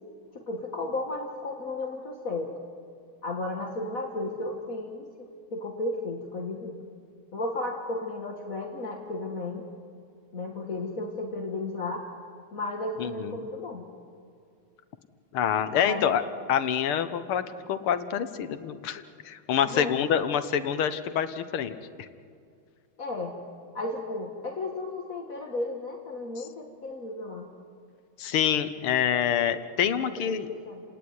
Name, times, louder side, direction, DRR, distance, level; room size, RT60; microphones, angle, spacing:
voice 1, 0.3-2.5 3.2-6.8 7.3-9.6 10.3-12.1 12.5-13.8 15.7-16.1 19.6-20.0 23.0-23.4 23.7-27.5 30.0-30.8, left 2 dB, 40° left, 1 dB, 2.1 m, -34 dB
voice 2, 13.0-13.4 15.3-16.2 16.5-21.7 22.0-22.1 28.2-30.5, left 9 dB, 85° left, 11 dB, 2.0 m, -26 dB
29.5 x 18.5 x 9.5 m, 2.3 s
omnidirectional pair, 2.3 m